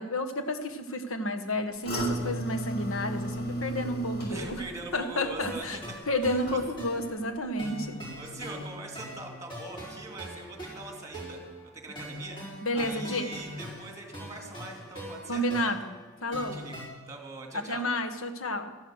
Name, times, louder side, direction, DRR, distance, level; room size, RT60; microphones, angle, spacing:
voice 1, 0.0-4.6 4.9-5.8 6.1-8.0 12.6-13.3 15.3-16.7 17.5-18.8, left 1 dB, 70° left, 6 dB, 1.5 m, -31 dB
sound 1, 1.8-7.1 7.4-7.8 8.2-8.3, equal, 50° left, 5.6 m, -35 dB
voice 2, 4.3-5.8 6.2-6.4 8.2-11.4 11.7-12.4 12.7-15.4 16.4-16.8 17.1-17.9, right 2 dB, 15° right, 2 dB, 2.6 m, -42 dB
sound 2, 5.4-16.9, equal, 25° left, 5.3 m, -42 dB
13.5 x 11.5 x 6.5 m, 1.1 s
head